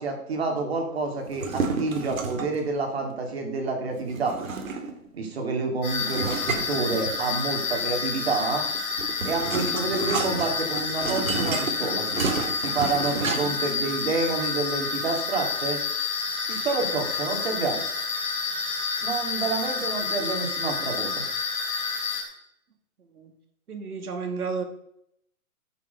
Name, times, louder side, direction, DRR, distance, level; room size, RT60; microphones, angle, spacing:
voice 1, 0.0-4.4 5.1-8.7 9.2-12.1 12.6-15.8 16.5-17.8 19.0-21.2, right 3 dB, 45° right, 3 dB, 2.6 m, -28 dB
sound 1, 1.3-2.6 4.1-5.1 6.1-7.5 8.6-13.7, right 4 dB, 65° right, 2.2 m, -31 dB
sound 2, 5.8-22.2, left 5 dB, 10° left, 2.9 m, -29 dB
voice 2, 23.7-24.6, right 5 dB, 80° right, 6 dB, 2.6 m, -32 dB
13.5 x 7.2 x 5.3 m, 0.76 s
hypercardioid pair, 180°, 44 cm